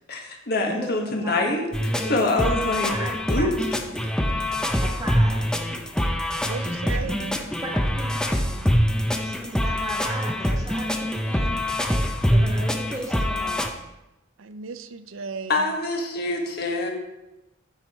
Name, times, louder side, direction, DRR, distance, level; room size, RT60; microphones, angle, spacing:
voice 1, 0.1-1.6 2.0-2.9 3.3-3.5 15.5-16.9, left 2 dB, 50° left, 1 dB, 1.6 m, -25 dB
voice 2, 0.7-2.5 2.9-3.9 4.8-5.4 7.6-8.6 9.1-11.6 12.3-13.7, right 1 dB, 15° right, 0 dB, 1.4 m, -36 dB
sound 1, 1.7-13.7, equal, 5° left, 0.6 m, -24 dB
voice 3, 6.4-7.4 12.0-12.3 14.4-15.7, right 5 dB, 80° right, 11 dB, 0.5 m, -36 dB
13.5 x 4.8 x 4.3 m, 0.98 s
head